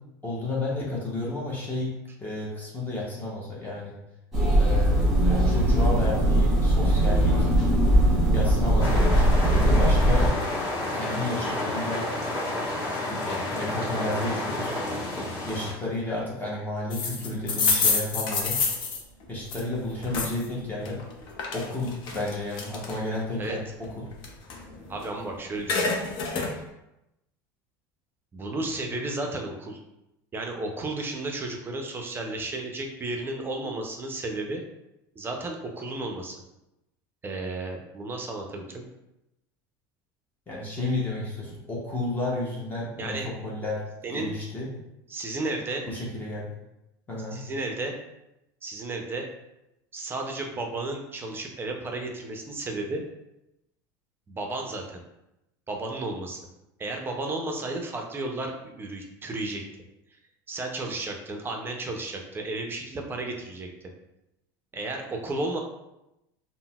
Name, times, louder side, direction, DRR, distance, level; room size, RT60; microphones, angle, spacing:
voice 1, 0.2-1.9 2.2-3.9 4.6-5.0 5.3-7.5 8.3-10.3 10.9-12.1 12.9-14.8 15.5-18.6 19.3-21.0 21.5-23.6 40.5-43.8 44.1-44.7 45.8-46.5 47.1-47.4, left 2 dB, 20° left, -5 dB, 0.8 m, -32 dB
sound 1, 4.3-10.3, right 1 dB, 5° right, 1.2 m, -20 dB
sound 2, 8.8-15.7, left 1 dB, 35° left, 1.2 m, -30 dB
sound 3, 16.9-20.5 20.8-23.2 23.7-25.2 25.5-26.5, left 4 dB, 55° left, 0.6 m, -28 dB
voice 2, 24.9-25.8 28.3-29.8 30.3-34.6 35.2-36.4 37.2-38.8 43.0-43.3 44.0-44.3 45.1-45.9 47.3-47.9 48.6-49.2 49.9-53.0 54.3-55.0 55.7-56.4 56.8-59.6 60.5-63.7 64.7-65.6, right 2 dB, 20° right, 2 dB, 0.5 m, -33 dB
3.8 x 2.0 x 2.3 m, 0.89 s
supercardioid pair, 110°, 10 cm